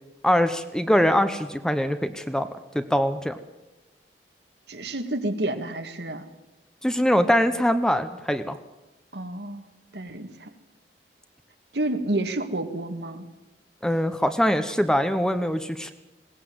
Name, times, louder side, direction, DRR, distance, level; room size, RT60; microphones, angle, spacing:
voice 1, 0.2-2.5 2.7-3.4 6.8-8.6 13.8-15.9, equal, 5° left, 10 dB, 0.8 m, -23 dB
voice 2, 4.7-6.2 9.1-9.7 9.9-10.5 11.7-13.3, right 1 dB, 75° right, 7 dB, 1.9 m, -29 dB
20.5 x 17.5 x 7.9 m, 1.1 s
head